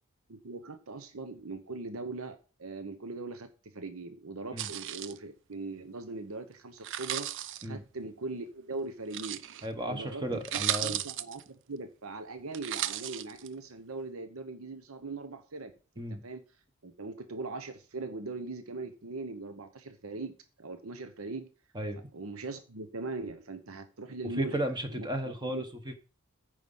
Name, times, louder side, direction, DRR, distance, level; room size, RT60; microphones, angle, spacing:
voice 1, 0.3-7.3 7.6-9.4 9.9-10.2 10.5-15.7 16.2-16.4 16.8-21.5 22.1-24.6 24.9-25.1 25.4-25.6, right 3 dB, 75° right, 9 dB, 0.9 m, -40 dB
sound 1, 4.6-5.2 6.8-7.6 9.1-9.7 10.1-10.2 10.4-11.4 12.5-13.5, right 12 dB, 60° right, 0.5 m, -35 dB
voice 2, 9.6-11.0 16.0-16.2 21.7-22.0 24.4-25.9, right 1 dB, 20° right, 7 dB, 1.1 m, -34 dB
9.4 x 5.0 x 5.5 m, 0.36 s
head